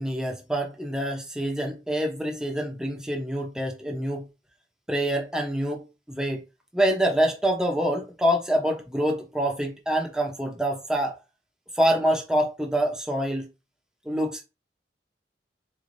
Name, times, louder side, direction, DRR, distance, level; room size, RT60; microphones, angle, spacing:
voice 1, 0.0-4.3 4.9-6.4 6.7-11.2 11.7-13.5 14.0-14.4, equal, 5° right, 0.7 m, -26 dB
4.1 x 3.2 x 2.6 m
head